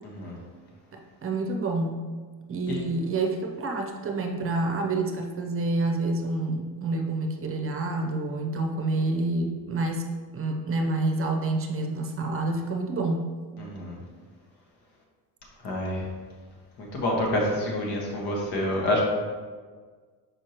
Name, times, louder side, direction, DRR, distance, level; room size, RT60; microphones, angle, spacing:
voice 1, 0.9-2.1 2.5-13.3, right 2 dB, 35° right, 3 dB, 0.7 m, -28 dB
voice 2, 13.6-14.0 15.6-16.0 16.8-19.0, left 1 dB, 80° left, -2 dB, 1.6 m, -27 dB
6.3 x 5.0 x 3.0 m, 1.5 s
cardioid pair, 125°, 40 cm